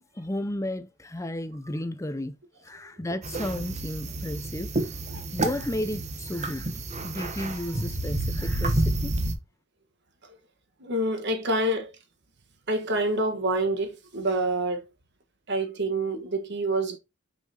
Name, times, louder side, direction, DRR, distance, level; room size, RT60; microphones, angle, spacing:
voice 1, 0.2-2.4 2.6-4.7 5.3-6.7 7.0-9.1, left 1 dB, 15° left, 0.6 m, -33 dB
sound 1, 3.2-9.3, right 2 dB, 35° right, 1.0 m, -29 dB
voice 2, 10.8-11.9 12.7-14.8 15.5-17.0, right 2 dB, 55° right, 1.5 m, -27 dB
6.2 x 5.6 x 2.9 m
head